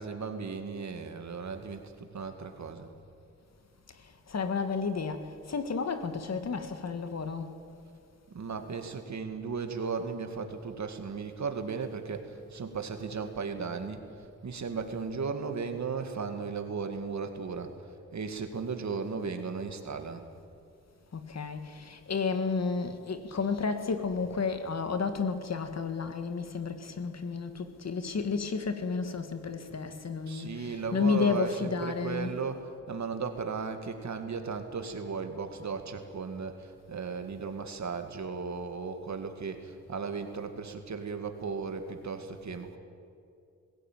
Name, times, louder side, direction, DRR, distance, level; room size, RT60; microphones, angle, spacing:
voice 1, 0.0-2.9 8.3-14.0 14.4-17.7 18.1-20.3 30.3-42.8, right 5 dB, 65° right, 2.1 m, -36 dB
voice 2, 4.0-7.5 21.1-32.4, left 5 dB, 55° left, 1.7 m, -32 dB
20.0 x 16.5 x 9.2 m
wide cardioid pair, 105°, 30 cm